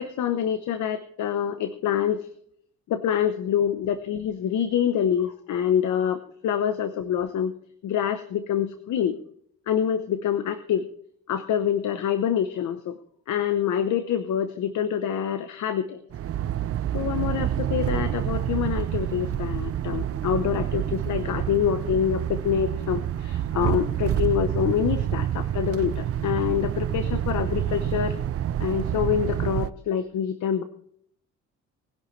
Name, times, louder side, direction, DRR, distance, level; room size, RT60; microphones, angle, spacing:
voice 1, 0.0-2.3 2.9-7.5 7.8-9.2 9.7-10.9 11.3-13.0 13.3-16.0 16.9-28.1 28.6-30.6, left 9 dB, 75° left, 11 dB, 1.0 m, -26 dB
sound 1, 16.1-29.7, right 11 dB, 50° right, 0.6 m, -28 dB
20.0 x 11.0 x 3.2 m, 0.67 s
cardioid pair, 90°, 30 cm